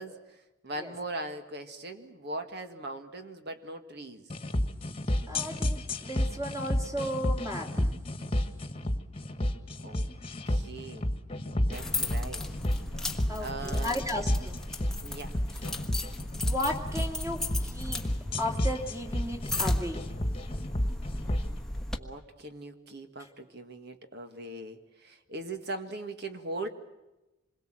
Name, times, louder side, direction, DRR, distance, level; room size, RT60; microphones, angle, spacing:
voice 1, 0.0-4.3 9.8-10.1 10.5-11.1 11.7-12.5 13.4-14.0 15.0-15.8 22.0-26.7, right 2 dB, 55° right, 7 dB, 1.9 m, -40 dB
sound 1, 4.3-21.5, left 1 dB, 30° left, 1.6 m, -31 dB
voice 2, 5.3-7.9 13.3-14.6 16.4-18.0 18.4-20.1, left 1 dB, 15° right, 2 dB, 3.0 m, -34 dB
sound 2, 11.7-22.0, left 2 dB, 5° left, 1.3 m, -36 dB
27.0 x 22.0 x 7.7 m, 1.0 s
head